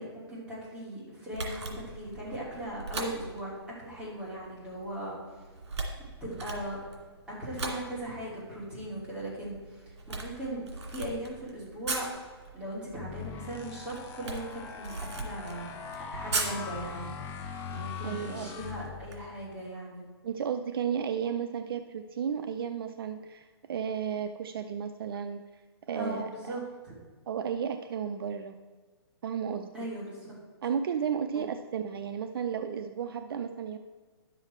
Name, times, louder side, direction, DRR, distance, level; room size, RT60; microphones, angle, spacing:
voice 1, 0.0-3.5 3.8-5.2 6.2-6.8 7.4-12.1 12.5-15.0 15.2-17.1 17.7-20.0 25.9-27.0 29.7-30.4 31.3-31.4, right 1 dB, 5° right, -7 dB, 2.8 m, -39 dB
Camera, 1.3-19.1, right 3 dB, 80° right, 2.4 m, -40 dB
sound 1, 12.9-19.3, left 6 dB, 15° left, 0.7 m, -41 dB
voice 2, 18.0-18.5 20.2-25.4 25.9-26.6 27.3-28.6 29.2-29.7 30.6-33.8, right 7 dB, 55° right, 8 dB, 0.5 m, -33 dB
10.5 x 7.0 x 4.4 m, 1.5 s
hypercardioid pair, 155°, 14 cm